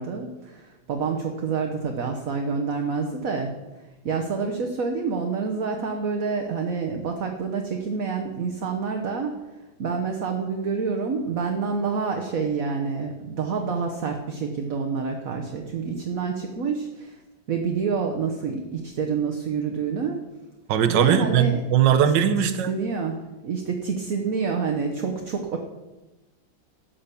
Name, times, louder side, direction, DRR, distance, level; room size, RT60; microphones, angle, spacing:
voice 1, 0.0-3.5 4.0-9.3 9.8-17.2 17.5-20.2 20.9-21.6 22.7-25.6, right 5 dB, 50° right, 3 dB, 1.3 m, -27 dB
voice 2, 20.7-22.7, right 9 dB, 70° right, 9 dB, 1.5 m, -20 dB
13.0 x 5.8 x 8.4 m, 1.1 s
omnidirectional pair, 2.2 m